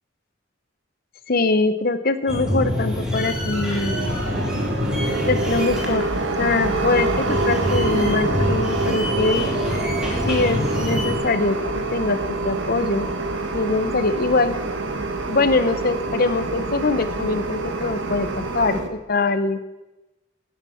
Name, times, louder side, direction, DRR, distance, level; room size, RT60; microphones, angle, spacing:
voice 1, 1.3-4.0 5.3-6.0 6.4-9.5 10.3-11.6 11.9-13.1 13.5-14.5 15.3-18.8 19.1-19.6, left 3 dB, 50° left, 12 dB, 0.9 m, -22 dB
sound 1, 2.3-11.2, left 1 dB, 5° right, 2.7 m, -26 dB
sound 2, 3.9-18.9, right 3 dB, 70° right, 1.4 m, -26 dB
11.0 x 10.5 x 7.1 m, 1.0 s
head